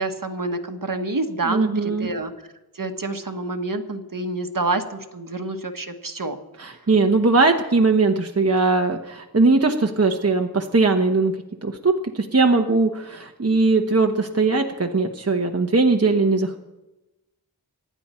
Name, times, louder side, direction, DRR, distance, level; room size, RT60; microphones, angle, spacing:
voice 1, 0.0-2.3 2.7-6.4, right 2 dB, 55° right, 6 dB, 1.4 m, -27 dB
voice 2, 1.4-2.1 6.6-11.3 11.6-16.6, right 3 dB, 40° right, 4 dB, 1.1 m, -20 dB
25.0 x 10.5 x 4.4 m, 1.0 s
wide cardioid pair, 50°, 38 cm